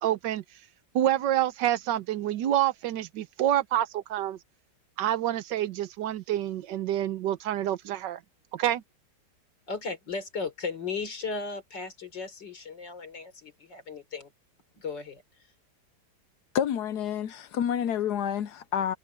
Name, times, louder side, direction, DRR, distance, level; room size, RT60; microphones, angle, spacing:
voice 1, 0.0-0.4 0.9-4.4 5.0-8.2 8.5-8.8, right 12 dB, 80° right, 1.5 m, -27 dB
voice 2, 9.7-14.3 14.7-15.2, left 4 dB, 85° left, 4.2 m, -36 dB
voice 3, 16.5-19.0, left 9 dB, 70° left, 1.2 m, -28 dB
omnidirectional pair, 1.9 m